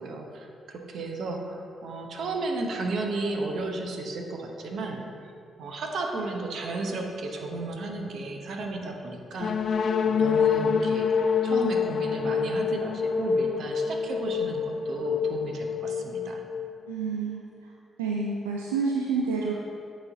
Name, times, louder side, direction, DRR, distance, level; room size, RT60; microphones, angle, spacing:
voice 1, 0.0-5.0 5.6-16.4, right 2 dB, 65° right, 2 dB, 0.8 m, -33 dB
sound 1, 9.4-17.1, left 6 dB, 60° left, 0.3 m, -26 dB
voice 2, 16.9-17.4 18.0-19.5, right 4 dB, 90° right, -2 dB, 0.3 m, -28 dB
8.6 x 4.1 x 3.9 m, 2.5 s
hypercardioid pair, 40°, 0 cm